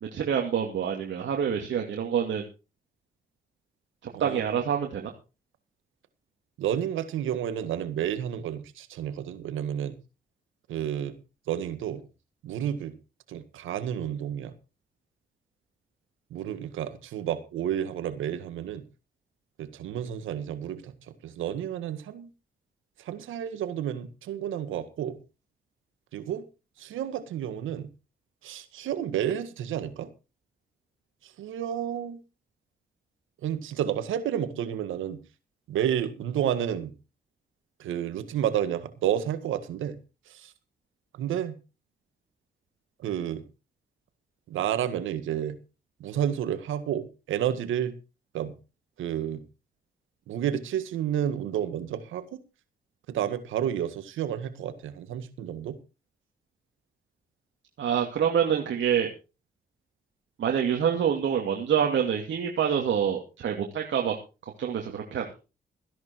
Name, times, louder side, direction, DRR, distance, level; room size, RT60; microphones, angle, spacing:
voice 1, 0.0-2.4 4.2-5.1 57.8-59.1 60.4-64.2 64.6-65.4, right 8 dB, 70° right, 1 dB, 2.7 m, -26 dB
voice 2, 6.6-10.0 10.7-11.1 11.5-12.0 12.4-12.9 13.3-14.5 16.3-18.8 19.6-20.9 21.2-22.3 23.0-25.2 26.1-26.4 26.8-27.9 28.4-30.1 31.2-32.2 33.4-35.2 35.7-36.9 37.8-40.0 40.3-40.5 41.1-41.5 43.0-43.4 44.5-45.6 46.0-48.0 48.3-48.5 49.0-49.4 50.3-52.2 53.1-55.8, right 10 dB, 85° right, 11 dB, 1.8 m, -30 dB
15.0 x 11.0 x 4.7 m, 0.31 s
supercardioid pair, 55°, 20 cm